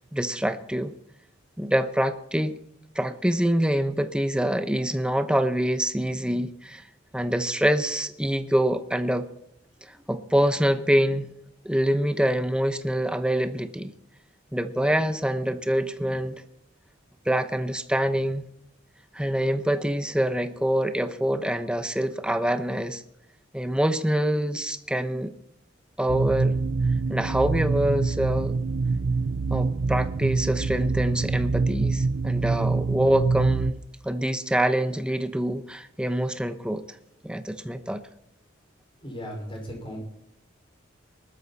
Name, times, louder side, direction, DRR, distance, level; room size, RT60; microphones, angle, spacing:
voice 1, 0.1-0.9 1.6-2.5 2.9-6.9 7.1-9.3 9.8-11.3 11.6-13.9 14.5-16.4 17.3-18.4 19.1-23.0 23.5-25.3 26.0-26.6 27.1-28.6 29.5-33.8 34.0-36.8 37.2-38.0, equal, 5° right, 10 dB, 0.9 m, -25 dB
sound 1, 26.1-33.7, right 4 dB, 80° right, 0.6 m, -25 dB
voice 2, 39.0-40.0, equal, 25° left, 1 dB, 5.2 m, -36 dB
19.5 x 12.5 x 4.2 m, 0.78 s
head